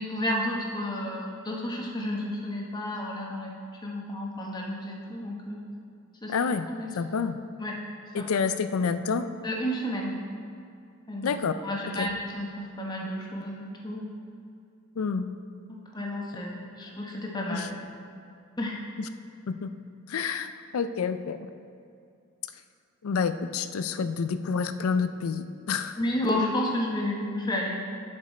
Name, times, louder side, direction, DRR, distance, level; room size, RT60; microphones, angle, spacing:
voice 1, 0.0-3.5 3.8-5.6 6.2-6.3 6.6-6.9 7.6-7.7 8.2-8.3 9.4-10.2 11.1-11.3 11.6-14.1 15.7-17.8 18.6-18.8 26.0-27.7, left 1 dB, 20° left, -2 dB, 1.0 m, -31 dB
voice 2, 6.3-6.7 6.9-7.4 8.1-9.3 11.2-11.5 12.0-12.1 15.0-15.3 17.5-17.7 19.0-19.1 19.5-19.7 20.1-21.5 23.0-26.0, left 5 dB, 80° left, 11 dB, 0.4 m, -28 dB
10.5 x 5.3 x 4.2 m, 2.4 s
head